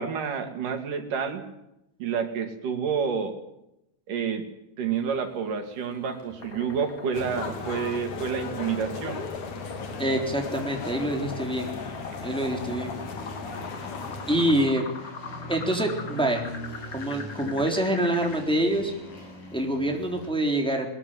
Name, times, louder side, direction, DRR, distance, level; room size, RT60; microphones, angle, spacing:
voice 1, 0.0-1.4 2.0-3.3 4.1-4.5 4.8-9.2, right 6 dB, 85° right, 6 dB, 4.1 m, -29 dB
sound 1, 5.0-20.3, left 1 dB, 90° left, 9.7 m, -45 dB
sound 2, 6.4-18.4, left 5 dB, 35° left, 1.5 m, -41 dB
sound 3, 7.1-14.7, left 4 dB, 70° left, 4.1 m, -37 dB
voice 2, 10.0-11.7 12.2-12.9 14.3-14.9 15.5-16.4 16.9-18.9 19.5-20.9, right 1 dB, ahead, 2 dB, 3.4 m, -26 dB
21.0 x 21.0 x 9.4 m, 0.86 s
omnidirectional pair, 3.6 m